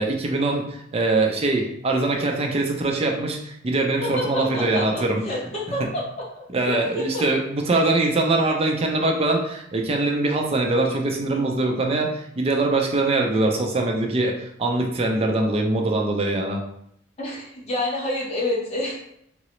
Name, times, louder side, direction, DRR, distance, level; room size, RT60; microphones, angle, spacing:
voice 1, 0.0-5.2 5.8-5.9 6.5-16.6, right 2 dB, 35° right, 2 dB, 0.5 m, -23 dB
voice 2, 4.0-6.0 6.4-7.2 11.3-11.5 17.2-18.9, left 1 dB, 35° left, -3 dB, 0.9 m, -28 dB
3.7 x 2.0 x 3.0 m, 0.72 s
head